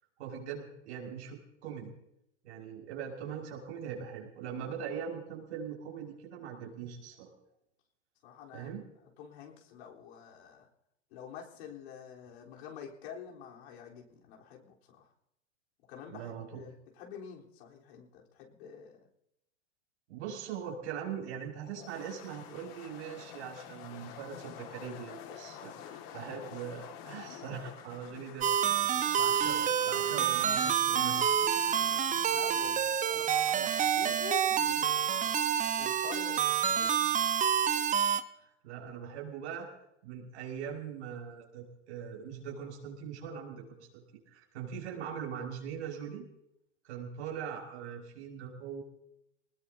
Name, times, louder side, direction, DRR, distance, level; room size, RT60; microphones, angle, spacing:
voice 1, 0.2-1.9 2.4-7.3 8.5-8.8 16.1-16.6 20.1-31.2 38.4-39.7 40.0-46.3 46.8-48.8, right 7 dB, 70° right, -2 dB, 6.0 m, -41 dB
voice 2, 8.2-8.7 9.2-10.7 11.1-15.1 15.9-19.1 29.5-30.6 32.3-35.4 35.8-37.1, left 8 dB, 65° left, -2 dB, 4.0 m, -48 dB
sound 1, 21.6-32.7, left 9 dB, 50° left, 2.2 m, -49 dB
sound 2, 28.4-38.2, right 8 dB, 20° right, 1.0 m, -28 dB
25.5 x 20.0 x 2.8 m, 0.80 s
hypercardioid pair, 105°, 35 cm